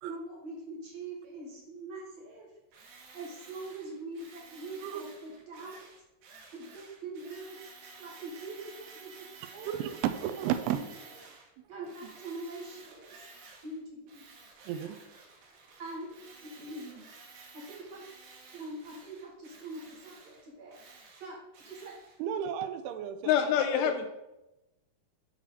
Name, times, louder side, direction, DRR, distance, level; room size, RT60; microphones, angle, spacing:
voice 1, 0.0-2.5 3.1-5.8 6.5-7.6 8.0-9.9 10.7-10.8 11.7-13.1 13.6-14.3 14.7-15.0 15.8-17.1 17.5-18.1 18.5-21.4 21.6-22.0, right 2 dB, 50° right, -4 dB, 2.5 m, -43 dB
Tools, 2.7-11.5 11.8-13.8 14.1-22.2, right 4 dB, 70° right, 3.0 m, -53 dB
voice 2, 9.6-10.8 12.0-12.1 14.7-15.0 22.2-24.0, right 10 dB, 85° right, 9 dB, 2.6 m, -33 dB
voice 3, 23.3-24.1, left 9 dB, 85° left, 7 dB, 2.4 m, -26 dB
7.4 x 4.7 x 5.7 m, 0.96 s
omnidirectional pair, 4.7 m